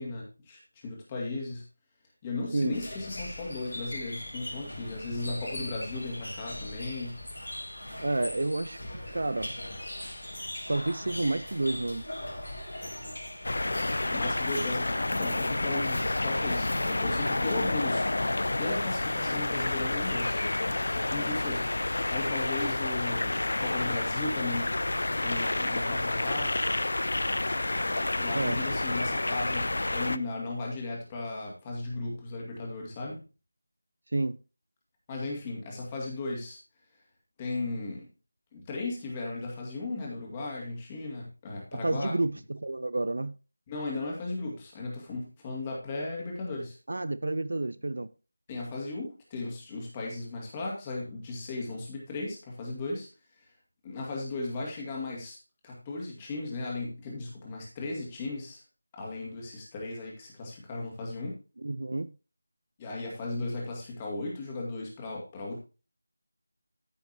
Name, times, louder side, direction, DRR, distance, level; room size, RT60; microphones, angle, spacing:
voice 1, 0.0-1.6 2.2-7.2 14.1-18.1 18.6-20.5 20.9-21.7 22.1-24.7 25.2-26.6 28.0-33.2 35.1-36.6 37.4-38.1 38.5-42.1 43.7-46.8 48.5-53.1 53.4-53.5 53.8-55.4 55.6-58.6 58.9-61.4 62.8-65.6, left 2 dB, 15° left, 2.2 m, -36 dB
sound 1, 2.7-15.2, left 1 dB, 70° left, 3.9 m, -40 dB
voice 2, 8.0-8.8 9.1-9.5 10.7-12.1 28.3-28.6 34.1-34.4 41.8-43.3 46.9-48.1 61.6-62.1, right 2 dB, 50° right, 0.5 m, -30 dB
sound 2, 13.4-30.2, left 2 dB, 55° left, 0.5 m, -29 dB
14.0 x 5.8 x 2.9 m
figure-of-eight pair, 165°, 0 cm